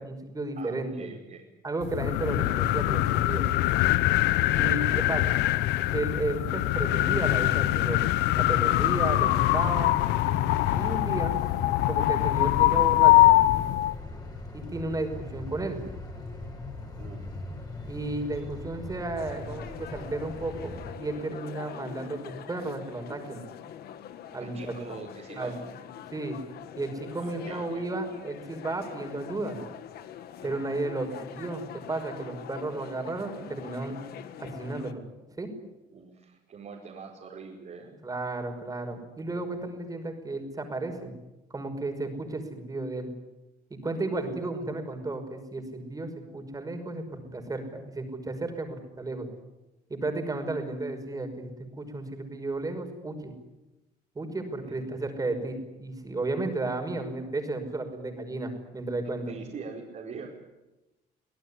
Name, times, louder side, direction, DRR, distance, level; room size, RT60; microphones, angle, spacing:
voice 1, 0.0-1.1 1.6-3.5 4.6-5.4 5.9-8.0 8.4-9.9 10.7-11.4 11.9-13.4 14.5-15.8 17.9-23.4 24.3-24.7 25.4-25.5 26.1-26.4 26.8-29.6 30.4-34.0 34.4-35.0 35.4-35.5 38.0-41.1 41.5-43.1 43.7-49.3 49.9-51.5 51.8-53.3 54.2-59.3, right 2 dB, 20° right, 5 dB, 5.5 m, -33 dB
voice 2, 0.6-1.5 4.5-4.6 17.0-17.3 24.4-25.6 27.2-27.8 30.4-30.5 35.9-37.9 54.7-54.8 59.3-60.3, right 5 dB, 50° right, -3 dB, 5.0 m, -43 dB
sound 1, 1.8-14.0, left 15 dB, 90° left, 0.9 m, -23 dB
sound 2, 8.5-20.9, left 2 dB, 20° left, 6.7 m, -41 dB
sound 3, 19.2-34.9, left 10 dB, 70° left, 1.8 m, -44 dB
26.0 x 17.5 x 9.9 m, 1.0 s
cardioid pair, 110°, 17 cm